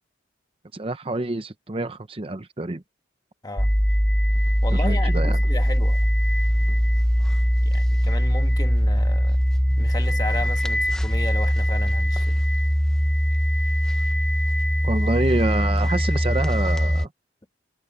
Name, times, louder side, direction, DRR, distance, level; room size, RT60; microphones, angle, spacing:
voice 1, 0.7-2.8 4.8-5.4 14.8-17.1, right 2 dB, 30° right, 0.7 m, -27 dB
voice 2, 3.4-3.7 4.6-6.1 7.6-9.4 9.8-12.5, left 2 dB, 20° left, 1.2 m, -34 dB
sound 1, 3.6-17.1, equal, 5° left, 0.8 m, -21 dB
head